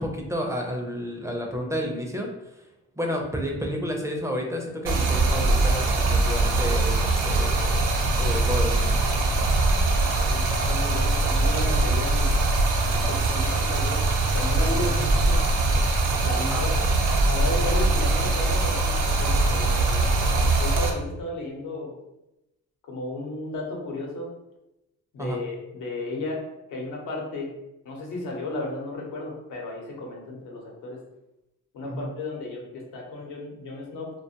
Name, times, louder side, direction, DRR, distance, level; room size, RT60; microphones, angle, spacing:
voice 1, 0.0-2.6 3.0-9.0 14.7-14.9 16.4-16.6 25.2-25.4 31.8-32.1, equal, 10° right, 1 dB, 0.4 m, -31 dB
Stream, 4.8-20.9, right 2 dB, 85° right, 0.6 m, -22 dB
voice 2, 10.2-12.4 12.8-14.0 14.3-15.4 16.2-16.8 17.3-21.9 22.9-24.3 25.1-26.4 26.7-27.5 27.8-31.0 31.7-34.1, left 2 dB, 90° left, -1 dB, 0.8 m, -34 dB
2.4 x 2.2 x 2.7 m, 0.91 s
cardioid pair, 90°, 30 cm